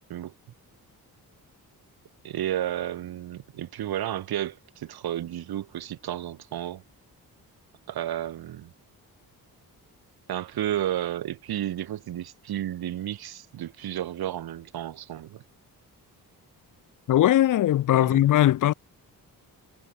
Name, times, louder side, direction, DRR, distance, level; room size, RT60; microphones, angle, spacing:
voice 1, 2.2-6.8 7.9-8.7 10.3-15.4 18.0-18.3, right 12 dB, 85° right, 1.7 m, -32 dB
voice 2, 17.1-18.7, left 13 dB, 60° left, 0.6 m, -20 dB
wide cardioid pair, 180°, 36 cm